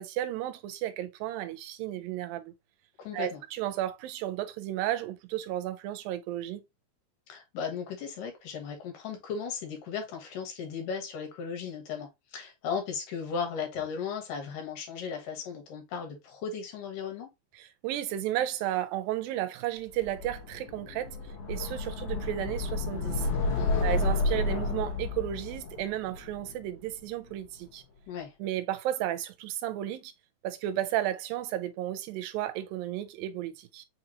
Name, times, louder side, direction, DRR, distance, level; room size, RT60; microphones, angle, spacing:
voice 1, 0.0-2.5 3.1-6.6 17.5-21.2 21.5-23.3 23.8-27.8 28.4-30.1 30.4-33.9, right 13 dB, 85° right, 2.4 m, -33 dB
voice 2, 3.0-3.4 7.3-17.3 23.5-23.9 28.1-28.3, left 6 dB, 75° left, 2.7 m, -36 dB
sound 1, 20.0-27.1, left 3 dB, 55° left, 2.2 m, -31 dB
5.6 x 3.0 x 2.8 m
omnidirectional pair, 4.0 m